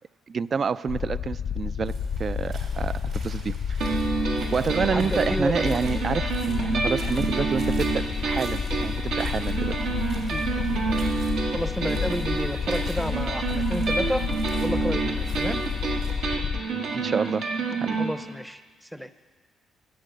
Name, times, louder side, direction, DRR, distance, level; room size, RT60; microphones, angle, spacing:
voice 1, 0.3-1.9 2.2-3.9 4.5-9.7 16.9-17.4 17.8-18.0, right 5 dB, 45° right, 17 dB, 0.3 m, -28 dB
sound 1, 0.9-16.6, left 7 dB, 65° left, 0.5 m, -30 dB
sound 2, 1.8-16.1, right 4 dB, 60° right, 2.9 m, -44 dB
sound 3, 3.8-18.1, right 4 dB, 85° right, 1.7 m, -28 dB
voice 2, 4.9-5.9 10.3-11.1 11.5-14.3 14.6-15.7 18.0-19.1, equal, ahead, 12 dB, 0.6 m, -31 dB
12.0 x 7.5 x 7.8 m, 1.5 s
cardioid pair, 90°, 0 cm